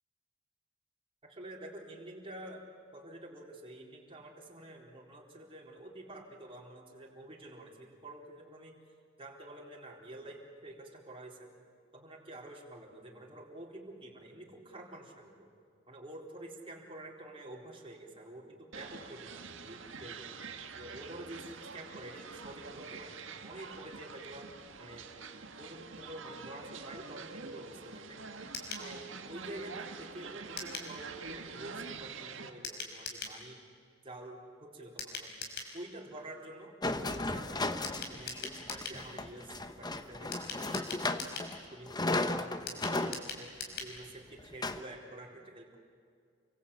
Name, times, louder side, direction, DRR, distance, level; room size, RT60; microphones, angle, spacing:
voice 1, 1.2-8.8 9.2-11.5 11.9-15.5 15.9-20.3 20.8-23.1 23.4-24.5 24.8-25.1 25.6-28.3 28.8-33.6 34.0-35.3 35.7-40.8 41.7-45.8, right 1 dB, 30° right, -2 dB, 4.2 m, -48 dB
sound 1, 18.7-32.5, right 5 dB, 70° right, 1.9 m, -46 dB
sound 2, 28.5-28.9 30.6-30.9 32.6-33.4 35.0-35.7 37.8-39.0 40.3-41.5 42.7-43.9 44.2-44.3 44.6-44.7, left 4 dB, 55° left, 5.4 m, -41 dB
sound 3, 36.8-41.6 41.9-43.2 43.7-43.8 44.4-44.8, left 2 dB, 20° left, 1.1 m, -35 dB
29.0 x 23.5 x 8.6 m, 2.2 s
head